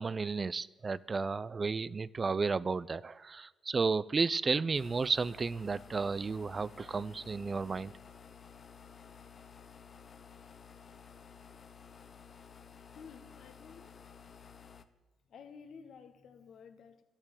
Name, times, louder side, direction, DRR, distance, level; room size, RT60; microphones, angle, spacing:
voice 1, 0.0-7.9, right 4 dB, 35° right, 0.4 m, -33 dB
sound 1, 4.7-14.8, left 6 dB, 45° left, 0.9 m, -54 dB
voice 2, 12.9-14.0 15.3-17.0, left 6 dB, 65° left, 1.3 m, -53 dB
11.0 x 8.8 x 8.8 m
cardioid pair, 90°, 0 cm